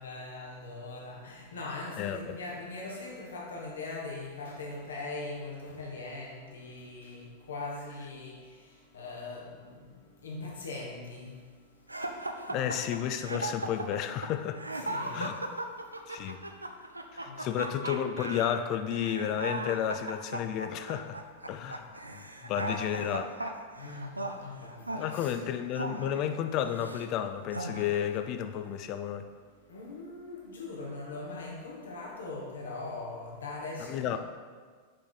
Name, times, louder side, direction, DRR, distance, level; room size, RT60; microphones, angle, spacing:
voice 1, 0.0-8.4 8.9-9.7 10.2-11.3 12.5-12.7 14.7-15.3 17.3-17.7 23.8-25.4 29.7-34.2, left 3 dB, 70° left, -1 dB, 1.3 m, -41 dB
voice 2, 2.0-2.4 12.5-14.6 15.1-15.3 16.1-16.4 17.1-21.2 21.5-23.5 25.0-29.3 33.9-34.2, left 10 dB, 40° left, 8 dB, 0.4 m, -32 dB
sound 1, 11.9-27.1 27.5-28.2, right 2 dB, 85° right, 0.4 m, -38 dB
6.6 x 4.7 x 3.9 m, 1.6 s
figure-of-eight pair, 90°, 0 cm